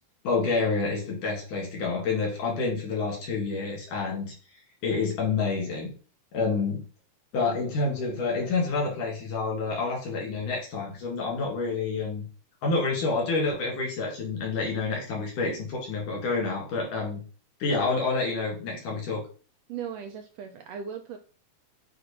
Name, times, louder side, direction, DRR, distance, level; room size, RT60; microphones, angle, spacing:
voice 1, 0.2-4.3 4.8-5.9 6.3-6.8 7.3-12.3 12.6-17.2 17.6-19.2, left 4 dB, 90° left, -1 dB, 3.6 m, -28 dB
voice 2, 19.7-21.2, right 7 dB, 80° right, 5 dB, 1.5 m, -37 dB
7.5 x 2.5 x 5.0 m, 0.36 s
omnidirectional pair, 3.5 m